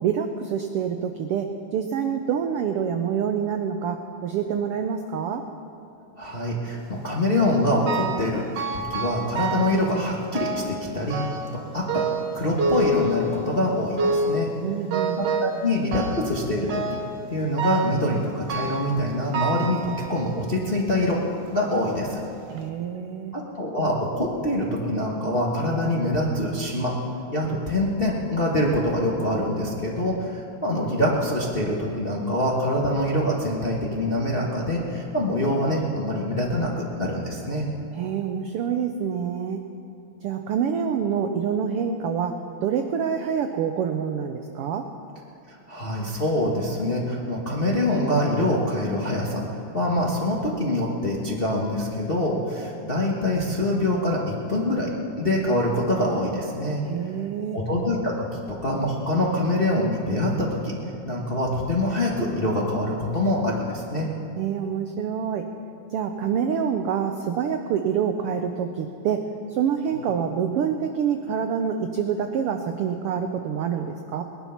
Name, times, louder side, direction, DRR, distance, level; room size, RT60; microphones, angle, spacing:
voice 1, 0.0-5.4 14.6-15.2 22.5-23.3 37.9-39.6 40.2-44.8 56.8-57.6 64.4-65.5 65.9-74.2, right 7 dB, 85° right, 6 dB, 1.2 m, -26 dB
voice 2, 6.2-11.2 11.7-12.1 12.3-14.5 15.2-16.8 17.3-21.2 21.5-22.2 23.3-27.0 27.3-37.7 45.5-49.4 49.7-54.9 55.2-56.8 57.5-60.7 61.0-64.1 69.9-70.0, left 1 dB, 35° left, -3 dB, 0.8 m, -25 dB
sound 1, 7.9-8.3 8.6-9.9 10.3-10.8 11.1-11.6 11.9-13.6 14.0-14.4 14.9-15.6 15.9-16.4 16.7-17.1 17.6-18.0 18.5-18.9 19.3-20.4 21.0-21.1 22.0-22.1 22.5-22.6, right 3 dB, 65° right, 2.0 m, -27 dB
20.0 x 11.5 x 5.8 m, 2.6 s
omnidirectional pair, 3.4 m